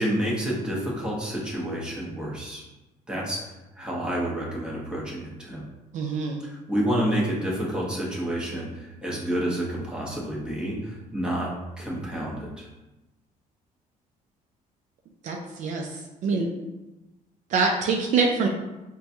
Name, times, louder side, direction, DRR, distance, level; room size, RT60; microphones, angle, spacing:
voice 1, 0.0-2.6 3.1-3.4 3.7-5.6 6.4-11.5 11.8-12.7, right 1 dB, 5° right, -4 dB, 0.8 m, -29 dB
voice 2, 5.9-6.4 15.2-16.5 17.5-18.5, right 4 dB, 55° right, 1 dB, 0.4 m, -25 dB
4.5 x 2.3 x 2.6 m, 1.0 s
cardioid pair, 140°, 15 cm